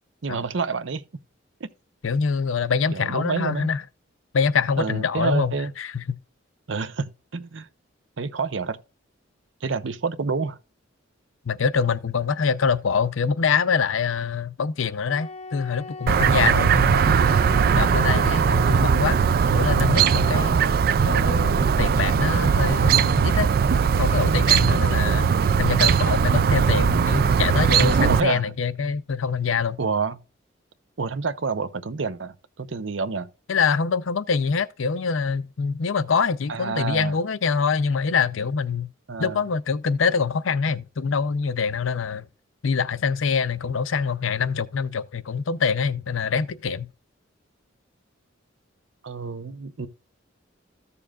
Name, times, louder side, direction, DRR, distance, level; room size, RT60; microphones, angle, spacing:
voice 1, 0.2-1.0 2.9-3.7 4.8-5.7 6.7-7.7 8.2-8.8 9.6-10.6 25.4-25.7 28.1-28.5 29.8-30.2 31.0-33.3 36.5-37.1 39.1-39.4 49.0-49.9, right 4 dB, 65° right, 0.7 m, -28 dB
voice 2, 2.0-3.8 4.3-6.0 11.4-17.2 17.7-19.2 19.5-20.6 21.0-23.5 24.0-25.3 25.6-29.8 33.5-38.9 39.2-42.3 42.6-46.9, left 5 dB, 80° left, 0.6 m, -25 dB
Wind instrument woodwind instrument, 15.1-19.3, left 4 dB, 30° left, 0.7 m, -39 dB
Chirp tweet, 16.1-28.2, right 6 dB, 50° right, 0.3 m, -19 dB
14.0 x 6.9 x 2.4 m
head